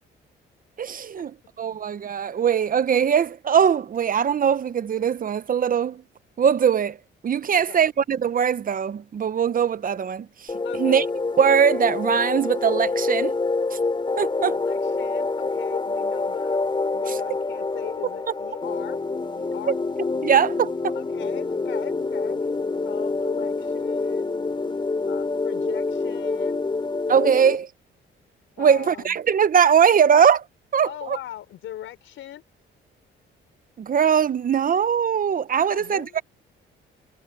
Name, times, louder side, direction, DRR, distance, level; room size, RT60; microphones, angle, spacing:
voice 1, 0.8-1.3 1.6-6.0 6.4-7.0 7.2-10.3 10.8-11.0 11.4-13.4 13.7-13.8 14.2-14.5 19.7-19.8 20.2-20.9 27.1-27.7 28.6-30.4 30.7-31.2 33.8-36.2, right 7 dB, 45° right, 0.8 m, -21 dB
voice 2, 7.5-7.9 10.6-11.0 14.4-16.6 16.9-19.0 19.3-19.8 20.9-22.4 22.8-24.4 25.0-26.7 28.6-29.2 30.8-32.4 35.7-36.2, left 12 dB, 80° left, 5.5 m, -39 dB
Chilly pad, 10.5-27.6, left 3 dB, 25° left, 3.8 m, -27 dB
cardioid pair, 90°, 20 cm